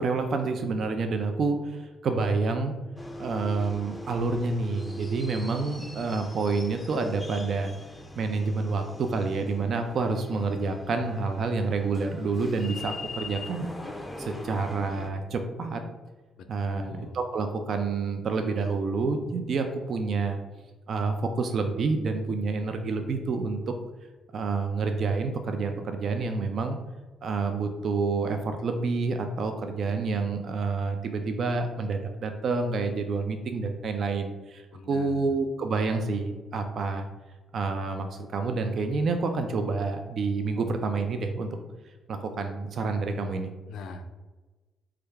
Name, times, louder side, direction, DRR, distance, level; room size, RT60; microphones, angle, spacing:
voice 1, 0.0-2.7 3.2-7.7 8.2-13.7 14.2-15.8 16.5-20.4 20.9-23.7 24.3-26.8 27.2-37.1 37.5-41.5 42.1-43.5, right 4 dB, 55° right, 6 dB, 0.3 m, -28 dB
sound 1, 3.0-15.1, left 2 dB, 10° left, 0.4 m, -41 dB
voice 2, 16.4-17.2 34.7-35.2 43.7-44.1, left 3 dB, 80° left, 6 dB, 0.3 m, -42 dB
3.2 x 2.3 x 3.3 m, 1.2 s
cardioid pair, 90°, 0 cm